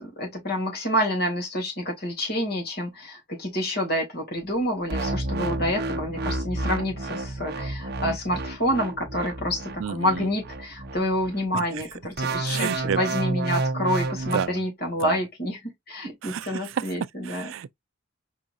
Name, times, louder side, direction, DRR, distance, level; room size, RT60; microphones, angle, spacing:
voice 1, 0.0-17.5, equal, 50° left, 2.9 m, -28 dB
sound 1, 4.9-11.4 12.2-14.5, right 2 dB, 55° right, 0.8 m, -30 dB
voice 2, 9.8-10.3 11.5-11.6 12.5-13.0 14.3-14.6 15.0-15.2 16.2-16.7 17.3-17.7, right 7 dB, 80° right, 0.4 m, -30 dB
4.6 x 4.2 x 2.5 m
head